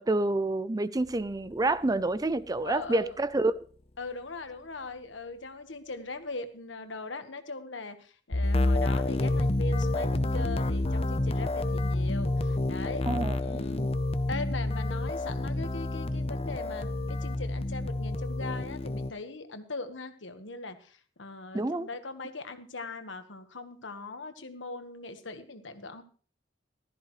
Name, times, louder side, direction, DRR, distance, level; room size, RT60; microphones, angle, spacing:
voice 1, 0.0-3.5 13.1-13.6 21.5-21.9, right 2 dB, 20° right, 0.5 m, -28 dB
voice 2, 2.6-3.2 4.0-13.1 13.4-13.9 14.3-26.0, left 3 dB, 80° left, 1.4 m, -40 dB
sound 1, 8.3-19.1, left 2 dB, 35° left, 0.7 m, -29 dB
15.0 x 13.5 x 3.2 m
head